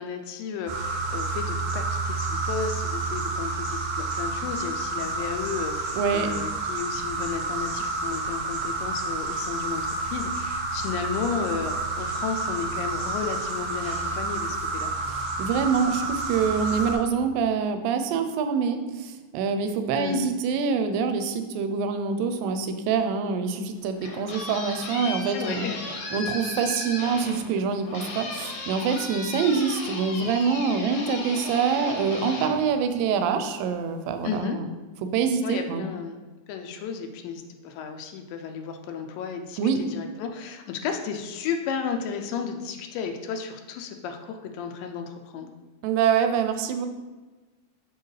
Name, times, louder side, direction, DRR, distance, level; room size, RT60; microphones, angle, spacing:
voice 1, 0.0-14.9 19.9-20.2 25.3-25.8 34.2-34.6 35.4-36.2 36.5-45.5, left 6 dB, 85° left, 5 dB, 2.2 m, -33 dB
sound 1, 0.7-16.9, right 3 dB, 65° right, 1.7 m, -30 dB
voice 2, 5.9-6.3 15.1-25.7 26.1-34.7 35.1-35.9 39.6-39.8 45.8-46.9, right 6 dB, 85° right, 8 dB, 2.2 m, -25 dB
sound 2, 23.8-33.4, left 2 dB, 65° left, 1.7 m, -36 dB
6.6 x 4.7 x 3.2 m, 1.2 s
omnidirectional pair, 4.0 m